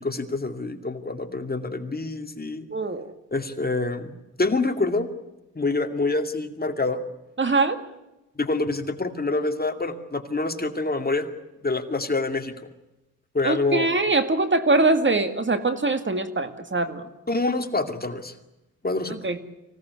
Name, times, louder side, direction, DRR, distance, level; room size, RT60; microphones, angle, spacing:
voice 1, 0.0-2.7 3.3-4.1 4.4-5.1 5.6-7.0 8.4-11.3 11.6-12.5 13.3-13.9 17.3-18.3 18.8-19.2, left 3 dB, 25° left, 6 dB, 2.4 m, -26 dB
voice 2, 2.7-3.1 7.4-7.8 13.4-17.1 19.2-19.4, right 3 dB, 35° right, 9 dB, 2.1 m, -22 dB
25.0 x 17.5 x 9.6 m, 0.97 s
cardioid pair, 90°, 34 cm